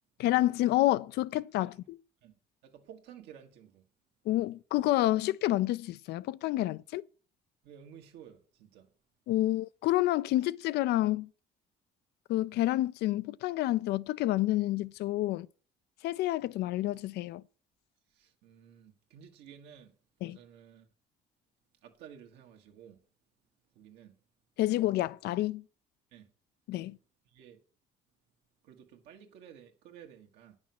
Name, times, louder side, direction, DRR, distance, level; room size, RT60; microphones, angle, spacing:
voice 1, 0.2-2.0 4.3-7.1 9.3-11.3 12.3-15.5 16.0-17.4 20.2-20.4 24.6-25.6 26.7-27.0, left 15 dB, 75° left, 0.4 m, -29 dB
voice 2, 2.2-3.9 7.6-8.9 18.1-20.0 20.2-20.9 21.8-23.0 23.7-24.2 26.1-26.3 27.3-27.6 28.6-30.6, right 9 dB, 90° right, 1.4 m, -53 dB
9.5 x 6.2 x 5.9 m
cardioid pair, 110°, 17 cm